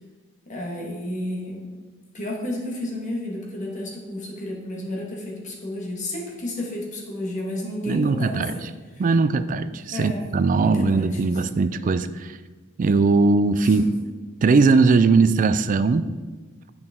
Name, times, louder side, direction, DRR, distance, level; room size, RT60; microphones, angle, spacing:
voice 1, 0.5-1.7 2.1-8.7 9.9-10.2 10.6-11.2 13.6-13.8, left 1 dB, 40° left, -2 dB, 1.7 m, -31 dB
voice 2, 7.9-8.6 9.0-12.3 12.8-13.9 14.4-16.1, right 4 dB, 40° right, 13 dB, 0.3 m, -19 dB
8.7 x 6.1 x 3.7 m, 1.4 s
head